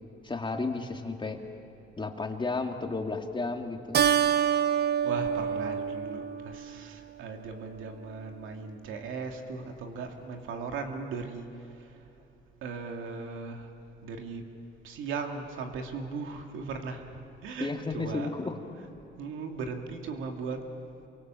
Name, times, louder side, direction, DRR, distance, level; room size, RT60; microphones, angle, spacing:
voice 1, 0.2-1.4 2.0-4.0 17.6-18.6, left 3 dB, 25° left, 3 dB, 2.5 m, -33 dB
Keyboard (musical), 3.9-6.8, right 8 dB, 55° right, 0.8 m, -27 dB
voice 2, 5.0-11.5 12.6-13.7 14.0-14.4 14.8-18.5 19.2-20.6, right 4 dB, 85° right, 4 dB, 2.5 m, -38 dB
28.0 x 24.0 x 7.7 m, 2.9 s
cardioid pair, 90°, 20 cm